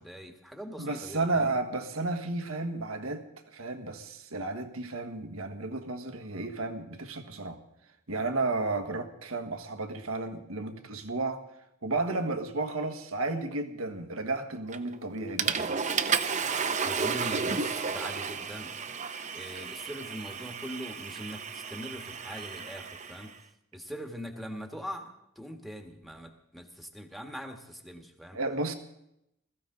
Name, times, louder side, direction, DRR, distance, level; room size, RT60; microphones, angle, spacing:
voice 1, 0.0-1.6 16.8-18.7 19.3-23.3 23.7-28.4, equal, ahead, 3 dB, 1.6 m, -42 dB
voice 2, 0.8-3.2 3.5-7.6 8.1-11.4 11.8-15.7 28.3-28.7, right 3 dB, 90° right, 6 dB, 1.5 m, -32 dB
Water / Toilet flush, 14.7-15.0 15.4-23.3, right 5 dB, 35° right, 0.8 m, -32 dB
21.0 x 14.5 x 3.9 m, 0.80 s
head